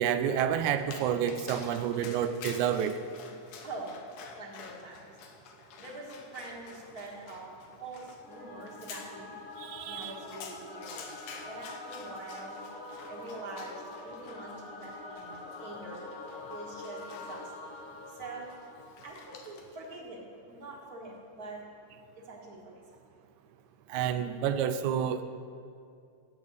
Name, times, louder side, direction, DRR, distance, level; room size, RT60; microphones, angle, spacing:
voice 1, 0.0-3.0 9.6-10.2 23.9-25.2, right 9 dB, 80° right, 10 dB, 1.9 m, -29 dB
Dog, 0.8-19.9, left 6 dB, 90° left, 2.5 m, -50 dB
voice 2, 4.4-5.0 5.8-7.5 7.8-9.4 9.9-11.1 11.5-12.6 13.1-16.0 16.5-17.4 18.2-18.5 19.0-20.2 20.5-21.6 22.3-22.6, right 3 dB, 35° right, -2 dB, 1.8 m, -44 dB
Singing / Musical instrument, 8.2-19.5, left 3 dB, 60° left, 1.8 m, -45 dB
9.0 x 8.3 x 8.0 m, 2.4 s
omnidirectional pair, 3.5 m